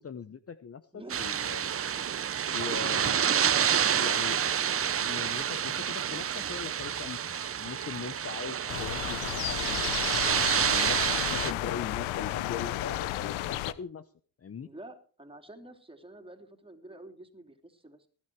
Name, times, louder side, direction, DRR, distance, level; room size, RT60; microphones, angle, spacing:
voice 1, 0.0-1.7 2.5-3.7 4.0-4.4 5.0-14.1 14.4-14.7, left 6 dB, 30° left, 13 dB, 0.9 m, -41 dB
sound 1, 1.1-11.5, right 8 dB, 30° right, 0.7 m, -28 dB
sound 2, 8.7-13.7, left 14 dB, 85° left, 1.0 m, -33 dB
voice 2, 14.6-18.1, right 1 dB, 10° right, 5 dB, 3.3 m, -48 dB
19.5 x 10.0 x 4.7 m, 0.41 s
supercardioid pair, 70°, 46 cm